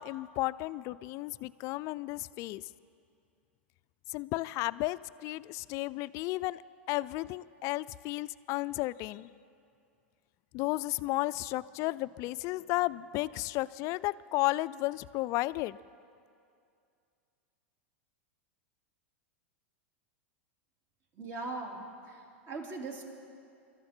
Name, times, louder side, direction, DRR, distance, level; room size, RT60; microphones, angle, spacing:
voice 1, 0.0-2.6 4.1-6.6 6.9-9.3 10.5-15.8, left 19 dB, 45° left, 18 dB, 0.4 m, -33 dB
voice 2, 21.1-23.0, right 3 dB, 45° right, 1 dB, 3.1 m, -40 dB
24.0 x 13.0 x 4.5 m, 2.4 s
hypercardioid pair, 105°, 7 cm